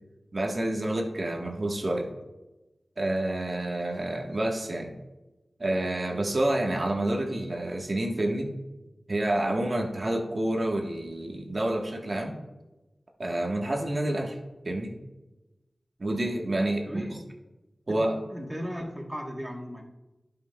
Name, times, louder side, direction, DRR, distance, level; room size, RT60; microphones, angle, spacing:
voice 1, 0.3-2.1 3.0-4.9 5.6-8.5 9.1-12.4 13.2-14.4 14.6-14.9 16.0-17.2 17.9-18.2, right 1 dB, 50° right, 1 dB, 1.3 m, -28 dB
voice 2, 16.8-17.1 17.9-19.8, equal, 10° right, 1 dB, 1.2 m, -37 dB
17.0 x 5.9 x 2.3 m, 1.1 s
wide cardioid pair, 60°, 0 cm